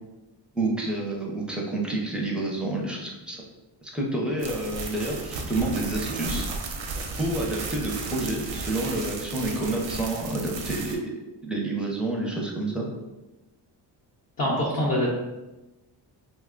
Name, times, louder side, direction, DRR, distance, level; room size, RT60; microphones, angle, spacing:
voice 1, 0.5-3.4 3.8-6.5 7.2-11.0 11.4-12.9, right 2 dB, ahead, -2 dB, 0.5 m, -29 dB
sound 1, 4.4-10.9, right 3 dB, 85° right, 0.7 m, -34 dB
voice 2, 14.4-15.2, equal, 45° left, -4 dB, 0.7 m, -24 dB
2.9 x 2.2 x 3.7 m, 1.1 s
cardioid pair, 130°, 44 cm